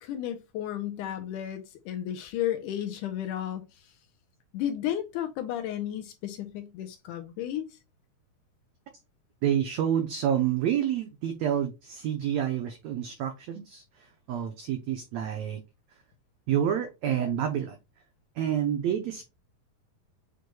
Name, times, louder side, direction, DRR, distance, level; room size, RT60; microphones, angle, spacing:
voice 1, 0.0-3.6 4.5-7.8, left 11 dB, 80° left, 2.0 m, -33 dB
voice 2, 9.4-13.8 14.3-15.6 16.5-17.8 18.4-19.3, right 9 dB, 85° right, 1.5 m, -28 dB
7.5 x 3.1 x 2.2 m
omnidirectional pair, 4.0 m